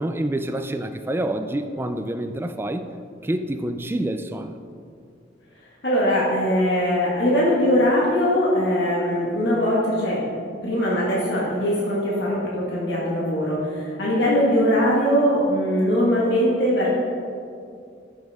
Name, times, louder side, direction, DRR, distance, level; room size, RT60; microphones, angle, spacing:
voice 1, 0.0-2.8 3.2-4.6, right 1 dB, 15° right, 8 dB, 0.3 m, -27 dB
voice 2, 5.8-10.2 10.6-16.9, equal, 65° left, -5 dB, 1.7 m, -21 dB
13.5 x 6.3 x 3.5 m, 2.4 s
head